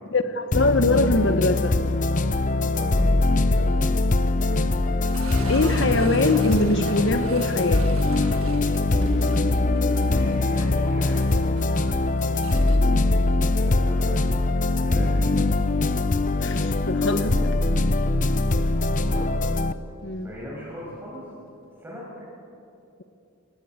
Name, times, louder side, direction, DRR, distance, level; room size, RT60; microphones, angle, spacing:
voice 1, 0.1-1.8 5.5-7.8 16.4-17.4 20.0-20.3, left 2 dB, 60° left, 9 dB, 1.2 m, -23 dB
sound 1, 0.5-19.7, left 2 dB, 35° left, 0.8 m, -22 dB
voice 2, 2.7-3.7 10.0-11.4 13.5-14.4 14.8-15.4 19.0-19.3 20.2-21.2 21.8-22.2, equal, 10° right, -6 dB, 6.7 m, -38 dB
sound 2, 3.7-5.3 5.7-5.9 6.2-6.3 6.7-6.8 7.2-7.3 7.7-7.9 8.2-8.3 8.7-14.7 15.0-15.1, equal, 90° left, 5.3 m, -47 dB
sound 3, 5.0-13.9 14.2-14.3 14.9-15.0 17.6-17.7, right 4 dB, 90° right, 1.8 m, -41 dB
27.5 x 20.0 x 8.2 m, 2.6 s
head